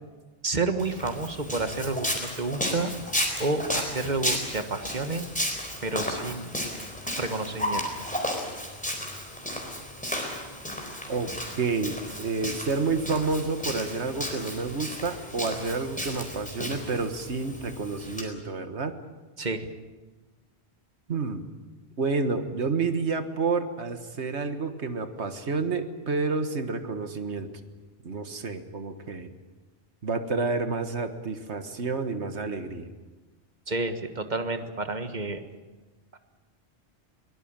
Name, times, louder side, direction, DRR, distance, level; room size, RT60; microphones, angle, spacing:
voice 1, 0.4-2.9 3.4-5.2 5.8-6.5 7.2-7.9 19.4-19.7 33.7-35.4 36.1-36.2, right 3 dB, 40° right, 8 dB, 1.7 m, -30 dB
Walk footsteps, 0.8-18.2, equal, 5° left, 4.1 m, -33 dB
voice 2, 11.6-19.0 21.1-21.5 22.0-27.5 28.0-29.3 30.0-32.9, right 4 dB, 85° right, 9 dB, 1.9 m, -29 dB
22.5 x 19.0 x 8.9 m, 1.2 s
omnidirectional pair, 1.1 m